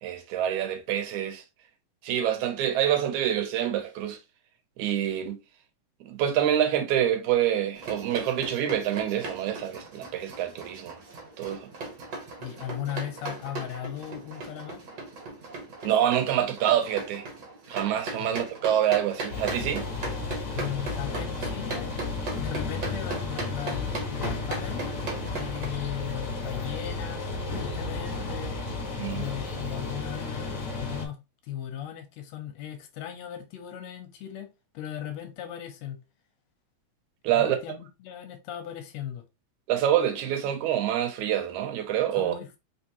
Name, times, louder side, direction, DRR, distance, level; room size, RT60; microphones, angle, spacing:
voice 1, 0.0-1.4 2.0-4.2 4.8-5.4 6.0-11.0 11.4-11.7 15.8-17.3 17.7-19.8 29.0-29.3 37.2-37.6 39.7-42.4, right 10 dB, 80° right, 2.1 m, -26 dB
sound 1, 7.7-25.7, right 3 dB, 55° right, 1.4 m, -38 dB
voice 2, 12.4-14.8 18.2-18.3 20.4-21.9 22.4-24.9 25.3-28.6 29.1-34.5 34.7-36.0 37.3-39.2 42.1-42.6, left 11 dB, 75° left, 1.8 m, -37 dB
sound 2, 19.3-31.0, left 3 dB, 45° left, 1.1 m, -33 dB
4.3 x 3.5 x 2.8 m
omnidirectional pair, 3.4 m